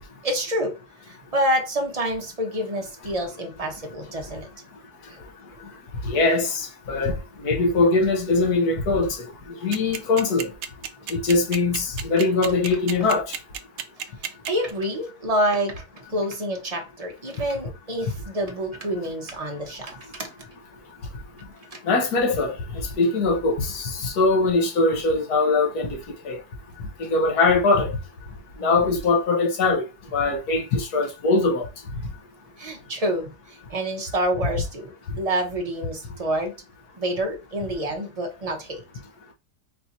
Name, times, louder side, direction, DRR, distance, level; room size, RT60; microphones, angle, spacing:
voice 1, 0.2-0.7 1.1-4.5 5.1-5.2 14.5-19.9 20.2-20.3 21.7-21.8 28.6-28.9 32.6-36.5 37.0-38.8, right 1 dB, 30° right, 0.7 m, -27 dB
voice 2, 6.0-7.1 7.4-9.2 9.6-10.5 11.1-13.3 21.9-22.5 23.0-26.0 26.2-26.4 27.0-28.0 28.6-29.8 30.1-31.6, left 3 dB, 65° left, 1.5 m, -21 dB
sound 1, 9.7-14.7, right 8 dB, 85° right, 0.6 m, -31 dB
4.6 x 2.8 x 4.0 m
omnidirectional pair, 1.8 m